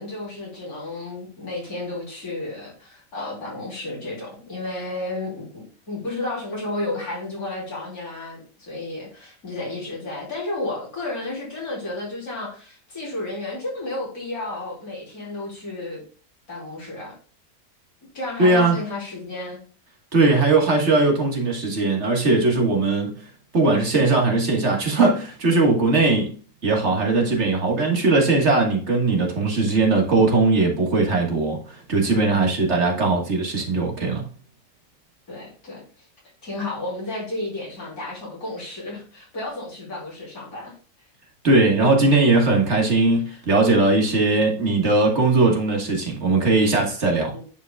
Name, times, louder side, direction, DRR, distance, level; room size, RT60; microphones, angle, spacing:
voice 1, 0.0-16.0 16.5-17.1 18.1-19.6 20.2-20.4 35.3-36.1 36.4-40.7 43.3-43.4 47.3-47.4, left 2 dB, 80° left, 3.8 m, -32 dB
voice 2, 18.4-18.8 20.1-23.1 23.5-26.3 26.6-34.3 41.4-47.3, right 3 dB, 50° right, 1.8 m, -19 dB
10.0 x 5.0 x 2.3 m
omnidirectional pair, 1.5 m